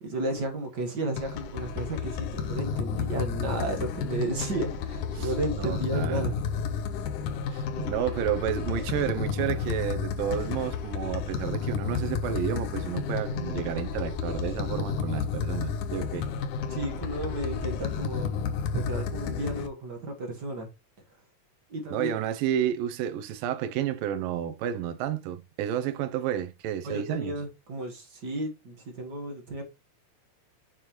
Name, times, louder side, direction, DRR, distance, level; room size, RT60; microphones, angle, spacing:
voice 1, 0.0-6.3 7.8-7.9 16.7-18.3 18.7-20.7 21.7-22.1 26.8-29.6, right 2 dB, 45° right, 1.5 m, -33 dB
sound 1, 1.2-19.7, left 6 dB, 75° left, 2.3 m, -31 dB
voice 2, 5.6-6.2 7.5-16.3 21.9-27.3, right 10 dB, 85° right, 2.6 m, -31 dB
7.3 x 6.4 x 3.1 m
omnidirectional pair, 3.9 m